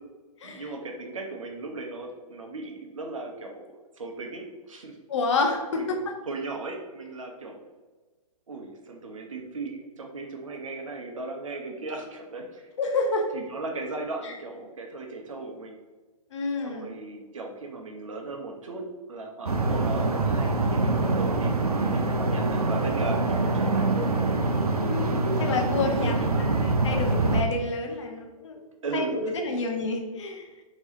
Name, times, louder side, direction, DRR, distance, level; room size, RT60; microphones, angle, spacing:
voice 1, 0.4-3.7 4.0-5.0 5.7-7.6 8.5-12.7 13.3-15.8 16.6-24.3 25.5-25.6 25.8-26.6 28.8-29.7, right 3 dB, 60° right, 2 dB, 0.8 m, -37 dB
voice 2, 5.1-6.1 12.8-13.3 14.2-14.3 16.3-16.9 24.8-26.2 26.6-28.6 28.9-30.5, left 3 dB, 50° left, 3 dB, 0.7 m, -29 dB
sound 1, 19.5-27.4, right 2 dB, 80° right, 0.5 m, -25 dB
4.6 x 3.0 x 2.7 m, 1.3 s
figure-of-eight pair, 120°, 19 cm